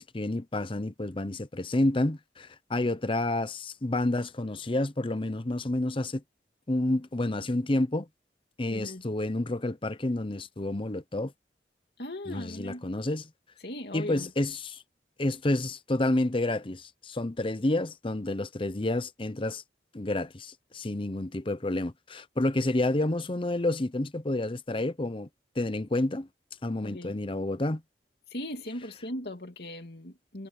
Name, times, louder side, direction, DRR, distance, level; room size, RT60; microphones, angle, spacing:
voice 1, 0.0-6.2 6.7-8.1 8.6-11.3 12.3-13.2 13.9-14.8 15.2-19.6 19.9-25.3 25.6-26.3 26.6-27.8, left 1 dB, 30° left, 0.8 m, -29 dB
voice 2, 8.7-9.0 12.0-12.8 13.6-14.3 26.8-27.2 28.3-30.5, left 1 dB, 60° left, 2.8 m, -38 dB
head